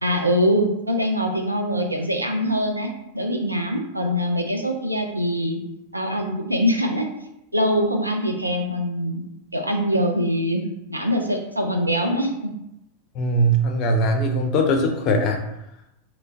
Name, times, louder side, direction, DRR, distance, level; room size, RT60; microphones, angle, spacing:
voice 1, 0.0-5.6 5.9-7.1 7.5-9.2 9.5-10.6 10.9-12.5, equal, 85° right, 3 dB, 0.3 m, -23 dB
voice 2, 13.2-15.4, right 1 dB, 40° left, 3 dB, 0.4 m, -20 dB
2.9 x 2.1 x 2.5 m, 0.85 s
figure-of-eight pair, 90°, 0 cm